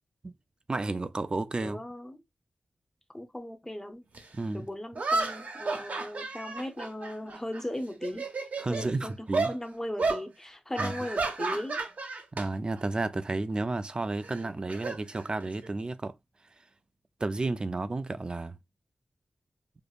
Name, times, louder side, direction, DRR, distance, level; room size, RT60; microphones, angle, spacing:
voice 1, 0.7-1.8 4.3-4.7 8.6-9.5 10.8-10.9 12.3-16.2 17.2-18.6, right 2 dB, 30° right, 0.3 m, -32 dB
voice 2, 1.6-2.2 3.1-4.0 4.5-8.2 8.7-11.8, left 1 dB, 15° left, 0.7 m, -37 dB
sound 1, 4.1-4.2 5.0-7.6 7.9-8.9 9.3-9.6 10.0-10.2 10.8-12.5 12.8-13.0 14.2-15.7, right 3 dB, 65° right, 0.7 m, -32 dB
5.1 x 2.0 x 2.4 m
wide cardioid pair, 105°, 3 cm